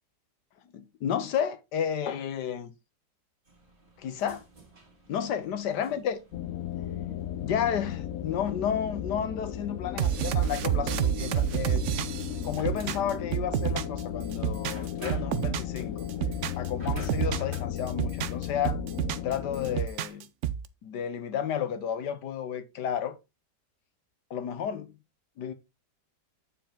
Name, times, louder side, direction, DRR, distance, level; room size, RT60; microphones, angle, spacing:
voice 1, 0.7-2.7 4.0-4.4 5.1-6.2 7.4-11.9 12.4-16.0 16.6-18.8 19.2-20.3 20.8-23.1 24.3-24.9 25.4-25.5, left 8 dB, 80° left, 1.5 m, -32 dB
sound 1, 3.4-17.6, right 1 dB, 30° right, 2.4 m, -51 dB
sound 2, 6.3-19.8, left 10 dB, 60° left, 0.9 m, -35 dB
sound 3, 10.0-14.0 14.3-15.8 16.1-17.6 17.9-19.3 19.6-20.7, right 10 dB, 70° right, 0.7 m, -29 dB
9.0 x 4.7 x 3.6 m
omnidirectional pair, 1.8 m